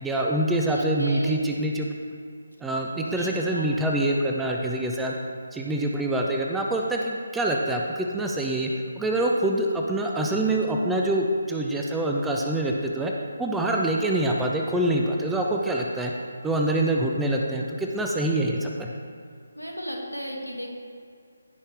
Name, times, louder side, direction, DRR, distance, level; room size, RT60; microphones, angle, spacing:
voice 1, 0.0-1.9 2.6-5.1 5.5-13.1 13.4-16.1 16.4-18.9, right 1 dB, 5° right, -1 dB, 0.6 m, -25 dB
voice 2, 0.7-1.4 3.2-3.7 19.6-20.7, equal, 90° right, 0 dB, 2.1 m, -35 dB
16.0 x 5.6 x 3.4 m, 2.3 s
figure-of-eight pair, 150°, 0 cm